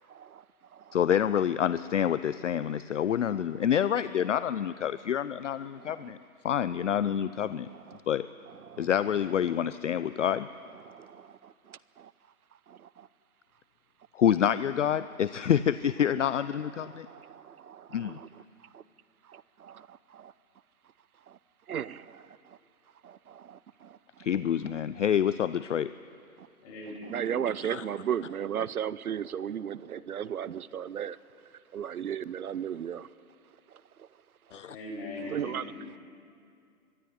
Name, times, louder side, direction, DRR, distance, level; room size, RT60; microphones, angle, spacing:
voice 1, 0.1-1.0 2.7-2.8 3.1-3.7 5.8-6.1 6.9-8.0 8.5-8.9 9.5-9.7 10.7-12.1 12.7-13.1 16.6-18.8 19.2-20.3 21.3-21.4 21.7-22.6 23.0-24.3 26.4-26.5 27.0-31.2 31.4-33.1 33.7-34.1 35.2-35.7, right 9 dB, 75° right, 19 dB, 0.7 m, -37 dB
voice 2, 0.9-6.2 6.4-7.7 8.1-8.3 8.8-10.5 14.1-17.1 17.9-18.2 24.2-25.9 27.7-27.8 34.5-34.7, left 9 dB, 55° left, 15 dB, 0.5 m, -27 dB
voice 3, 26.6-27.4 34.7-35.9, left 1 dB, 25° left, -4 dB, 6.5 m, -40 dB
22.5 x 13.0 x 9.9 m, 2.4 s
hypercardioid pair, 160°, 44 cm